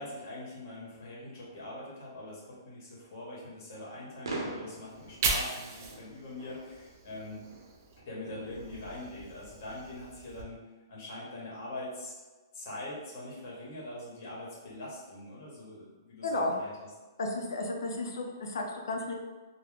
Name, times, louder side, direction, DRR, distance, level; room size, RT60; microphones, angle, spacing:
voice 1, 0.0-7.4 8.0-10.6 10.9-12.1 12.5-16.7, left 1 dB, 40° left, -5 dB, 0.9 m, -43 dB
sound 1, 3.8-8.8, right 2 dB, 80° right, 0.6 m, -44 dB
Fire, 4.8-8.0 8.4-10.4, right 4 dB, 35° right, 0.4 m, -38 dB
voice 2, 16.2-16.6 17.2-19.1, left 2 dB, 80° left, 2 dB, 0.5 m, -33 dB
3.4 x 2.1 x 2.4 m, 1.3 s
hypercardioid pair, 175°, 2 cm